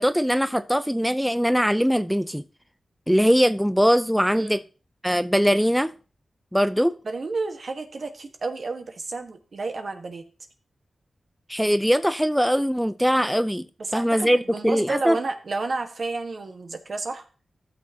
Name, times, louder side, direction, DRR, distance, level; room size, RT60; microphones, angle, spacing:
voice 1, 0.0-2.4 3.1-4.6 5.0-5.9 6.5-6.9 11.5-13.7 13.9-15.2, equal, ahead, 0.5 m, -21 dB
voice 2, 7.0-10.2 13.9-17.2, right 3 dB, 60° right, 1.4 m, -31 dB
14.5 x 6.3 x 2.8 m
cardioid pair, 45°, 0 cm